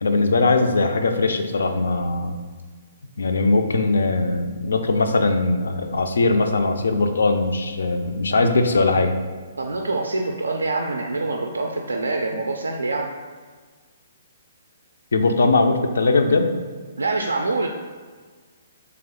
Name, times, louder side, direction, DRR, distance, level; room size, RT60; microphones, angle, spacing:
voice 1, 0.0-2.4 3.2-9.2 15.1-16.6, left 3 dB, 70° left, 6 dB, 0.4 m, -20 dB
voice 2, 9.6-13.1 17.0-17.7, right 3 dB, 75° right, 3 dB, 0.3 m, -25 dB
3.4 x 3.3 x 3.6 m, 1.5 s
figure-of-eight pair, 125°, 0 cm